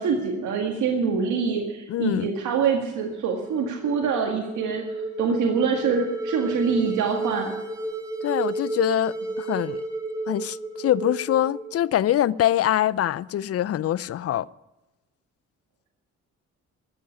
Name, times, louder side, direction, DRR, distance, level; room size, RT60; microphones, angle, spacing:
voice 1, 0.0-4.8 5.2-7.5, right 5 dB, 75° right, 1.9 m, -25 dB
voice 2, 1.9-2.3 8.2-9.8 10.3-14.5, left 12 dB, 50° left, 0.5 m, -24 dB
sound 1, 3.1-12.3, right 2 dB, 10° right, 4.0 m, -32 dB
14.5 x 7.6 x 9.7 m
cardioid pair, 90°, 30 cm